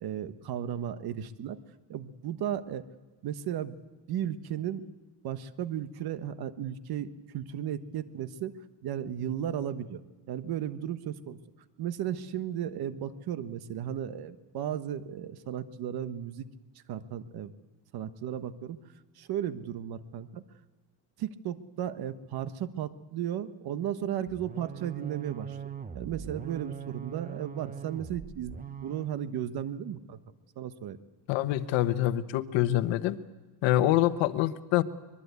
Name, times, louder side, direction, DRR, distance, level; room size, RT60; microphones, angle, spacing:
voice 1, 0.0-1.6 1.9-2.9 3.2-3.8 4.1-4.9 5.2-10.0 10.3-11.4 11.8-16.5 16.9-17.5 17.9-18.8 19.2-20.4 21.2-28.6 28.8-30.2 30.6-31.0, right 10 dB, 55° right, 11 dB, 1.3 m, -35 dB
sound 1, 24.3-29.1, right 8 dB, 20° right, 0.9 m, -41 dB
voice 2, 31.3-33.2 33.6-34.8, left 14 dB, 75° left, 12 dB, 1.2 m, -25 dB
24.0 x 21.5 x 8.3 m, 1.2 s
cardioid pair, 130°, 45 cm